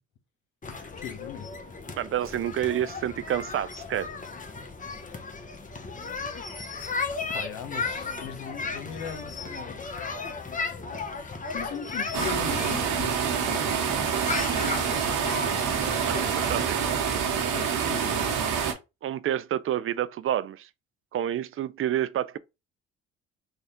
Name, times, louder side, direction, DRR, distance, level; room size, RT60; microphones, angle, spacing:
sound 1, 0.6-16.6, left 4 dB, 25° left, 0.9 m, -35 dB
voice 1, 1.0-1.5 7.2-9.8 11.5-13.8 14.6-15.1 16.7-16.9 17.5-18.4, left 9 dB, 75° left, 1.0 m, -39 dB
voice 2, 1.9-4.1 16.1-16.8 19.0-20.7 21.1-22.4, right 11 dB, 45° right, 0.5 m, -29 dB
sound 2, 12.1-18.7, right 7 dB, 75° right, 1.0 m, -27 dB
3.3 x 2.3 x 4.3 m
supercardioid pair, 60°, 31 cm